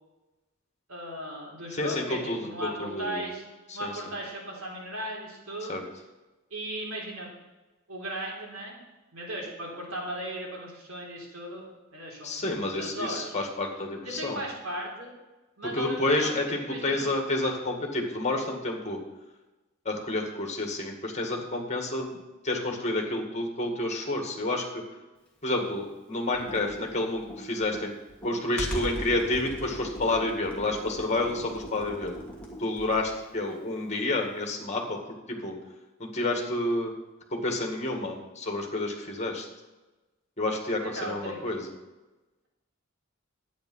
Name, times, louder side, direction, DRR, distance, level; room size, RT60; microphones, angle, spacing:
voice 1, 0.9-3.4 3.7-5.8 6.5-7.3 7.9-8.8 9.1-11.6 11.9-13.4 14.0-15.1 15.6-16.3 16.6-17.1 40.8-41.4, right 1 dB, 85° right, -2 dB, 3.6 m, -37 dB
voice 2, 1.7-3.3 3.7-3.9 5.7-5.8 12.2-14.4 15.7-19.0 19.9-22.2 22.4-24.6 25.4-27.9 28.2-32.1 32.6-35.0 35.3-35.6 36.0-36.9 37.3-39.5 40.4-41.7, left 2 dB, 35° left, 2 dB, 2.0 m, -29 dB
Computer keyboard, 26.3-33.2, equal, 5° left, 2.2 m, -39 dB
11.0 x 9.2 x 5.6 m, 1.1 s
head